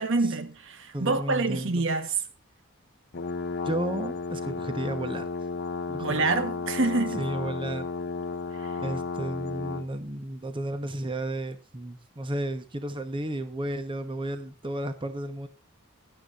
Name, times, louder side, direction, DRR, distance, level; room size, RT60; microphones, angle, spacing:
voice 1, 0.0-2.2 6.0-7.3 8.6-8.7, right 3 dB, 60° right, 1.1 m, -27 dB
voice 2, 0.9-1.9 3.6-5.3 5.9-6.3 7.1-7.9 8.8-15.5, right 1 dB, 25° right, 1.0 m, -33 dB
sound 1, 3.1-9.9, left 4 dB, 50° left, 0.6 m, -33 dB
17.5 x 11.0 x 2.5 m
head